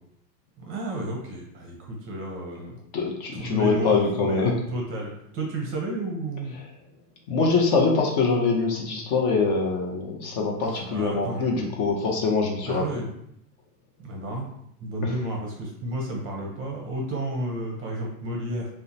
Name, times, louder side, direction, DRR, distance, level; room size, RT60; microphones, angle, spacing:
voice 1, 0.7-2.8 3.3-6.6 10.6-11.5 12.6-13.1 14.0-14.5 14.8-18.7, right 1 dB, 30° right, -1 dB, 0.5 m, -32 dB
voice 2, 2.9-4.5 7.3-12.8 15.0-15.1, left 4 dB, 45° left, 0 dB, 0.5 m, -24 dB
2.8 x 2.1 x 2.5 m, 0.75 s
hypercardioid pair, 115°, 47 cm